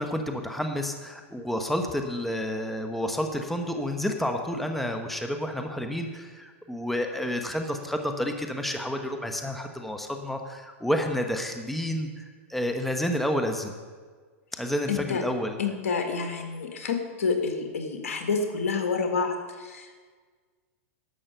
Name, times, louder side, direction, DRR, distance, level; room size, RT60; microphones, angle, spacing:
voice 1, 0.0-13.7 14.5-15.6, equal, ahead, 5 dB, 1.0 m, -30 dB
voice 2, 14.9-15.2 15.6-20.0, left 5 dB, 80° left, 5 dB, 1.8 m, -28 dB
11.5 x 7.5 x 6.8 m, 1.5 s
hypercardioid pair, 120°, 8 cm